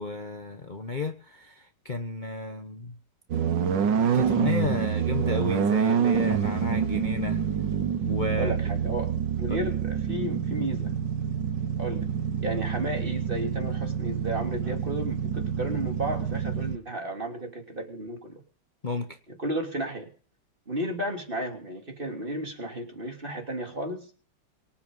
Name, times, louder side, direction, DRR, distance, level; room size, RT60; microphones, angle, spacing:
voice 1, 0.0-3.0 4.1-7.4 8.1-8.6 9.5-9.7 18.8-19.2, left 3 dB, 30° left, 1.2 m, -32 dB
sound 1, 3.3-16.8, right 7 dB, 85° right, 1.9 m, -27 dB
voice 2, 8.4-10.9 11.8-12.1 12.4-18.4 19.3-20.1 20.7-24.1, right 1 dB, 30° right, 3.4 m, -33 dB
24.0 x 8.9 x 5.5 m
omnidirectional pair, 1.9 m